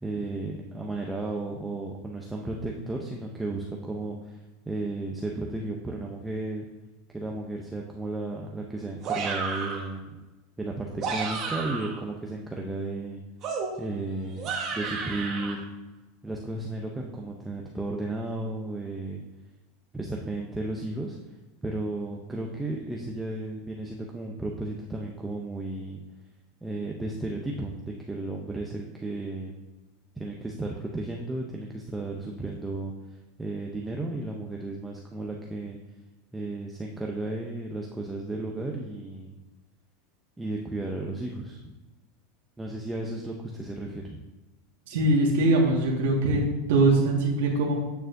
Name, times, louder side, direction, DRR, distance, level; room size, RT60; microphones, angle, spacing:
voice 1, 0.0-6.7 7.1-10.2 10.6-13.2 13.8-15.7 16.2-19.2 19.9-21.2 21.6-26.0 26.6-27.8 28.1-29.5 30.2-32.9 33.4-35.8 36.3-39.3 40.4-41.7 42.6-44.2, right 2 dB, 5° right, -1 dB, 0.6 m, -34 dB
sound 1, 9.0-9.9 10.8-12.0 13.4-15.5, right 4 dB, 35° right, 1.2 m, -32 dB
voice 2, 44.9-46.4 46.7-47.7, right 2 dB, 75° right, -2 dB, 1.6 m, -22 dB
9.0 x 6.7 x 2.6 m, 1.1 s
supercardioid pair, 150°, 0 cm